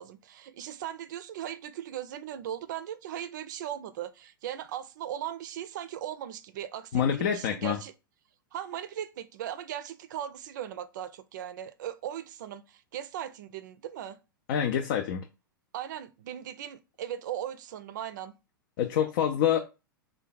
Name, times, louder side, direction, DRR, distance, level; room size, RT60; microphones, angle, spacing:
voice 1, 0.0-7.9 8.5-14.2 15.7-18.4, right 10 dB, 55° right, 0.4 m, -38 dB
voice 2, 6.9-7.8 14.5-15.2 18.8-19.6, left 9 dB, 50° left, 0.5 m, -26 dB
3.3 x 2.2 x 3.9 m
figure-of-eight pair, 95°, 12 cm